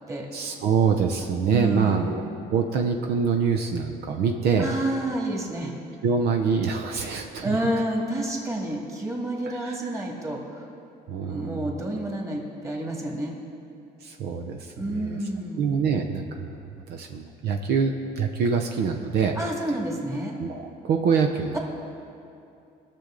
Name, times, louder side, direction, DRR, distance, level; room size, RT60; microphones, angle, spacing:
voice 1, 0.3-2.2 2.5-4.7 6.0-7.6 9.5-9.8 11.1-11.7 14.0-15.2 15.6-19.3 20.4-21.6, right 6 dB, 75° right, 4 dB, 0.7 m, -25 dB
voice 2, 1.5-2.1 4.6-5.7 7.4-10.7 11.3-13.4 14.8-15.7 19.4-20.4, right 1 dB, 15° right, -1 dB, 2.1 m, -29 dB
19.0 x 6.8 x 3.8 m, 2.6 s
cardioid pair, 110°, 17 cm